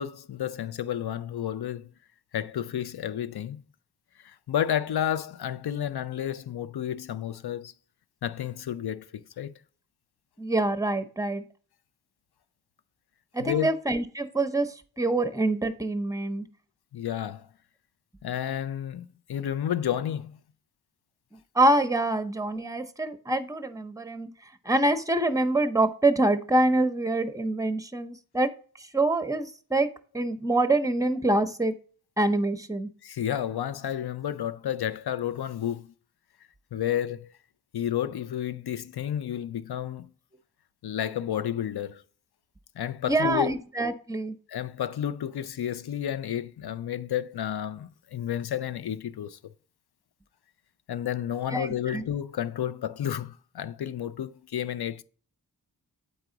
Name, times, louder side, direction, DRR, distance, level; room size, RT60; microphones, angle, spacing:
voice 1, 0.0-1.9 2.3-3.6 4.2-7.7 8.2-9.6 13.4-13.7 16.9-17.5 18.2-20.4 33.0-35.9 36.7-37.3 37.7-40.1 40.8-42.0 42.8-43.5 44.5-49.4 50.9-55.0, left 10 dB, 75° left, 0.5 m, -31 dB
voice 2, 10.4-11.4 13.3-16.5 21.5-24.3 24.6-28.5 28.8-29.9 30.1-31.7 32.2-32.9 43.1-44.4 51.5-52.0, right 2 dB, 10° right, 0.7 m, -25 dB
8.0 x 4.7 x 3.9 m
wide cardioid pair, 95°, 38 cm